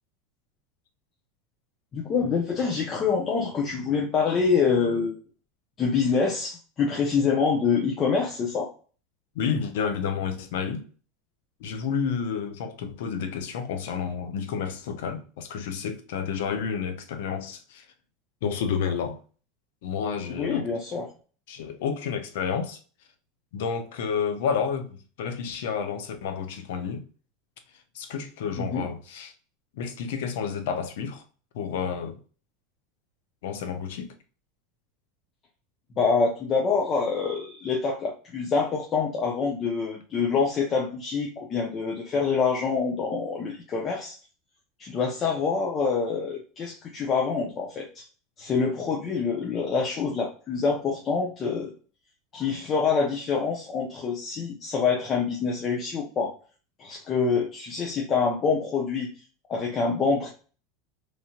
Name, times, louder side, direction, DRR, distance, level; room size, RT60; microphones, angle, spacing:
voice 1, 1.9-5.2 5.8-8.7 20.3-21.1 28.6-28.9 36.0-44.1 44.8-48.0 48.4-51.7 52.3-56.3 56.8-59.1 59.5-60.3, left 5 dB, 35° left, 0.7 m, -26 dB
voice 2, 9.3-10.9 11.6-17.8 18.4-19.2 19.8-20.7 21.5-22.8 23.5-27.0 27.9-29.3 29.8-31.2 31.5-32.2 33.4-34.1, left 6 dB, 75° left, 0.6 m, -30 dB
3.2 x 2.7 x 2.3 m
supercardioid pair, 110°, 0 cm